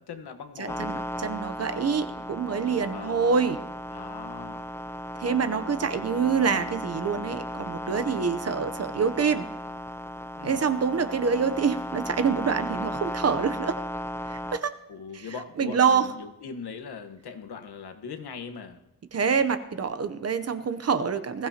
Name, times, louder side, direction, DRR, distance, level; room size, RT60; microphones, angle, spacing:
voice 1, 0.0-1.1 2.9-3.2 3.9-4.7 10.4-10.6 14.9-18.8, left 6 dB, 75° left, 5 dB, 1.3 m, -40 dB
voice 2, 0.6-3.6 5.2-9.5 10.4-13.8 14.3-14.7 15.1-15.3 15.6-16.1 19.1-21.5, right 6 dB, 40° right, 11 dB, 0.8 m, -26 dB
sound 1, 0.7-14.6, equal, 5° left, 0.4 m, -35 dB
20.5 x 16.0 x 2.9 m, 0.88 s
wide cardioid pair, 165°, 39 cm